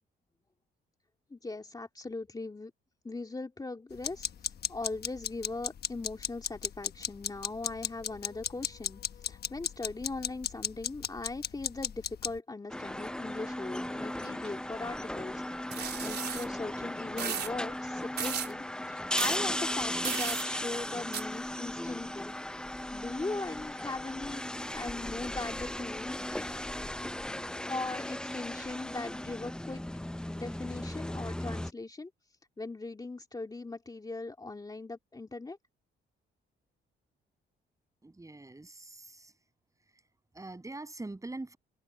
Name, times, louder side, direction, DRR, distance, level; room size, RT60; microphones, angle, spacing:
voice 1, 1.3-2.7 3.0-15.4 15.8-22.3 22.9-26.6 27.6-29.8 30.3-32.1 32.6-35.6, left 3 dB, 20° left, 2.7 m, -40 dB
sound 1, 4.0-12.4, left 8 dB, 55° left, 1.2 m, -35 dB
sound 2, 12.7-31.7, left 1 dB, 5° left, 0.5 m, -36 dB
sound 3, 15.7-16.5 17.2-17.5 18.2-18.5 19.2-19.4 20.0-20.5 21.1-21.2, right 8 dB, 55° right, 3.3 m, -35 dB
voice 2, 38.0-39.3 40.3-41.6, right 2 dB, 15° right, 7.5 m, -43 dB
cardioid pair, 90°, 20 cm